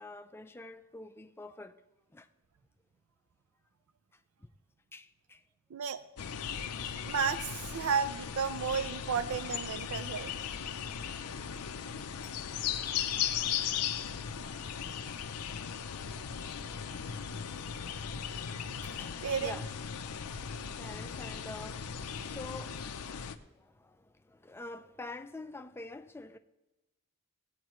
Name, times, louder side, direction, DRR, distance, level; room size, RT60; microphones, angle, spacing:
voice 1, 0.0-1.8 2.1-2.3 4.9-5.4 19.0-19.7 20.4-22.8 23.1-26.4, left 2 dB, 10° left, 0.4 m, -47 dB
sound 1, 6.2-23.4, left 8 dB, 90° left, 0.6 m, -37 dB
voice 2, 7.1-10.3 16.2-16.9 18.8-19.5, right 6 dB, 65° right, 0.4 m, -33 dB
17.0 x 8.8 x 3.1 m
head